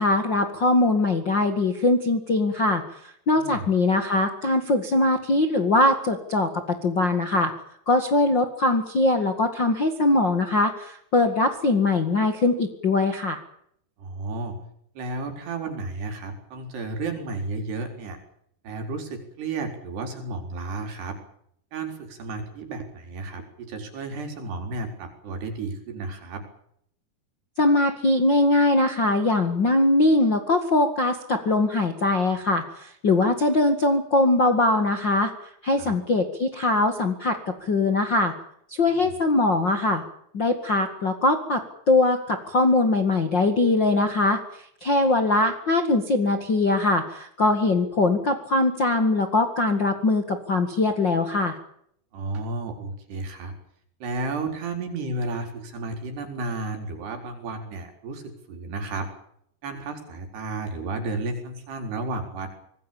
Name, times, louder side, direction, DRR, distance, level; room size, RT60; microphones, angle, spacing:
voice 1, 0.0-2.8 3.3-6.5 6.8-7.5 7.9-13.4 27.6-35.3 35.6-38.3 38.8-40.0 40.3-41.6 41.9-44.4 44.8-51.6, left 2 dB, 40° left, 5 dB, 1.6 m, -21 dB
voice 2, 14.0-14.6 15.0-18.2 18.6-21.2 21.7-26.5 35.8-36.0 38.9-39.2 52.1-53.5 54.0-59.1 59.6-62.5, right 3 dB, 65° right, 5 dB, 6.3 m, -32 dB
26.0 x 19.5 x 7.2 m, 0.71 s
omnidirectional pair, 5.1 m